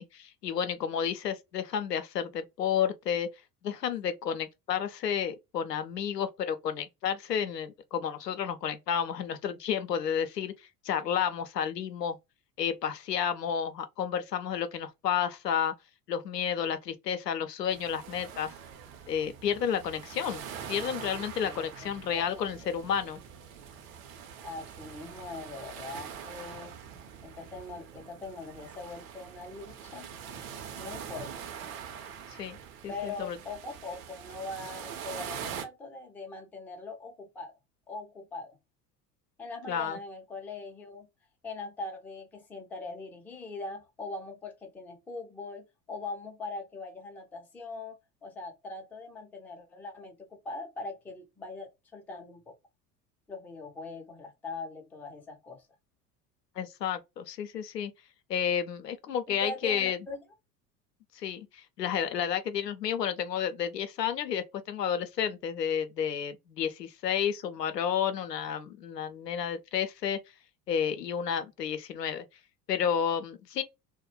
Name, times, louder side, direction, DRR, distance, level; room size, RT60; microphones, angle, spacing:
voice 1, 0.0-3.3 3.6-10.5 10.8-12.2 12.6-15.7 16.1-18.5 19.1-20.4 20.7-23.2 32.4-32.6 32.8-33.4 39.7-40.0 56.6-57.9 58.3-60.0 61.2-70.2 70.7-72.3 72.7-73.6, left 8 dB, 80° left, 0.5 m, -31 dB
sound 1, 17.7-35.7, right 8 dB, 60° right, 0.7 m, -44 dB
voice 2, 21.4-22.3 24.4-26.7 27.2-30.1 30.8-31.3 32.9-37.5 37.9-38.6 39.4-41.1 41.4-48.0 48.2-52.5 53.3-55.6 59.3-60.2, left 3 dB, 5° left, 0.4 m, -41 dB
2.2 x 2.1 x 2.8 m
figure-of-eight pair, 70°, 48 cm